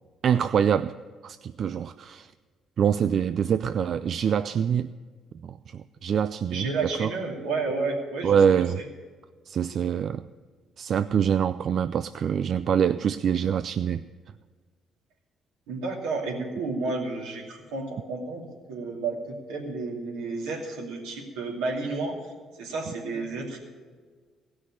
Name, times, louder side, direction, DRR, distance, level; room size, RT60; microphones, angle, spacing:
voice 1, 0.2-0.9 1.2-2.3 2.8-4.9 5.4-6.7 7.0-7.1 8.2-8.8 9.5-10.2 10.8-14.0, right 8 dB, 60° right, 12 dB, 0.3 m, -25 dB
voice 2, 6.5-8.4 15.7-19.2 19.5-22.2 22.6-23.6, right 3 dB, 85° right, -2 dB, 2.7 m, -31 dB
16.0 x 6.3 x 9.9 m, 1.5 s
supercardioid pair, 65°, 0 cm